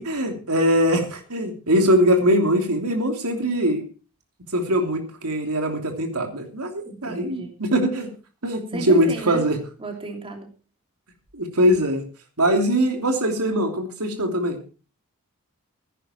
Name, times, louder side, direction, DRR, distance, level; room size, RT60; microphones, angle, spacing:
voice 1, 0.0-3.8 4.5-8.1 8.4-9.6 11.3-12.0 12.4-14.6, equal, 85° right, 3 dB, 3.1 m, -22 dB
voice 2, 6.8-7.5 8.7-9.4 9.8-10.5, right 2 dB, 25° right, 2 dB, 3.1 m, -33 dB
16.0 x 10.0 x 4.4 m, 0.35 s
head